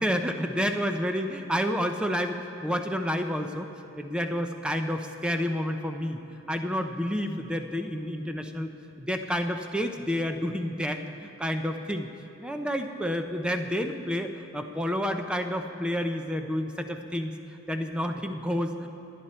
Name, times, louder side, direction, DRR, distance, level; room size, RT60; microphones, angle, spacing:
voice 1, 0.0-3.7 4.0-6.2 6.5-8.7 9.0-12.1 12.4-17.3 17.7-18.9, equal, 5° right, 5 dB, 0.6 m, -29 dB
26.5 x 9.8 x 4.4 m, 2.8 s
head